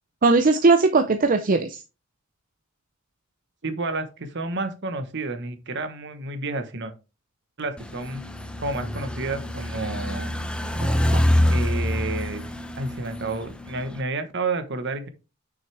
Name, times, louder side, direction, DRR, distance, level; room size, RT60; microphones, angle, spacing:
voice 1, 0.2-1.8 10.8-11.5, right 3 dB, 40° right, 8 dB, 0.5 m, -20 dB
voice 2, 3.6-6.9 7.6-8.2 8.6-10.3 11.5-12.4 12.8-15.1, right 3 dB, 55° right, 8 dB, 1.2 m, -30 dB
sound 1, 7.8-14.0, left 1 dB, 5° left, 0.6 m, -26 dB
6.4 x 6.0 x 3.4 m, 0.29 s
head